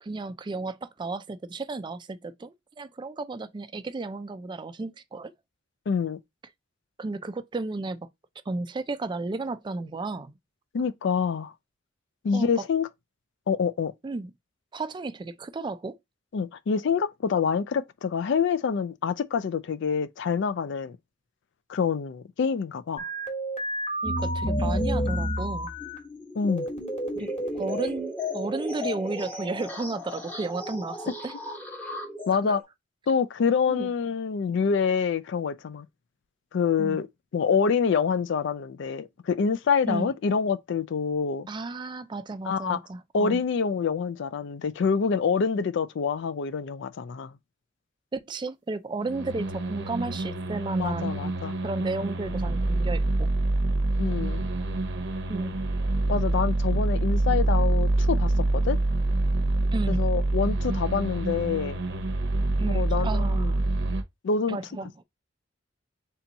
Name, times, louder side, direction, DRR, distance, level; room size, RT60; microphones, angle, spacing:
voice 1, 0.0-5.3 7.0-8.0 8.5-10.3 12.3-12.7 14.0-14.3 14.7-16.0 24.0-25.7 27.2-31.3 32.4-32.6 33.7-33.9 36.8-37.0 39.9-40.1 41.5-43.4 48.1-51.2 51.6-53.3 55.3-55.5 59.7-60.0 62.6-63.7 64.5-64.9, right 3 dB, 25° right, 0.3 m, -33 dB
voice 2, 5.9-6.2 10.7-11.5 12.2-12.9 13.5-13.9 16.3-21.0 21.7-23.1 26.4-26.7 32.3-32.6 33.1-35.9 36.5-37.1 37.3-41.5 42.5-42.8 43.1-47.3 50.8-51.6 54.0-54.4 56.1-58.8 59.9-61.8 62.7-63.5 64.2-64.6, left 6 dB, 65° left, 0.4 m, -26 dB
sound 1, 23.0-26.0 26.5-28.1, right 1 dB, 35° left, 1.2 m, -33 dB
sound 2, 24.1-32.6, left 1 dB, 10° left, 0.8 m, -33 dB
sound 3, 49.0-64.0, right 2 dB, 65° right, 0.8 m, -26 dB
3.4 x 2.9 x 3.9 m
head